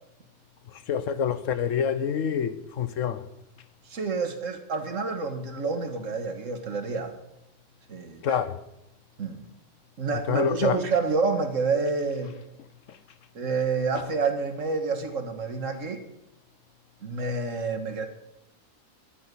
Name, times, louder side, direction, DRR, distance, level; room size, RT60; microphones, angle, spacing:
voice 1, 0.9-3.2 8.2-8.6 10.3-10.8, left 8 dB, 70° left, 1.2 m, -26 dB
voice 2, 3.9-7.2 7.9-8.4 9.2-9.5 10.0-12.3 13.4-16.0 17.0-18.1, right 4 dB, 65° right, 1.9 m, -28 dB
12.5 x 9.0 x 8.3 m
omnidirectional pair, 1.4 m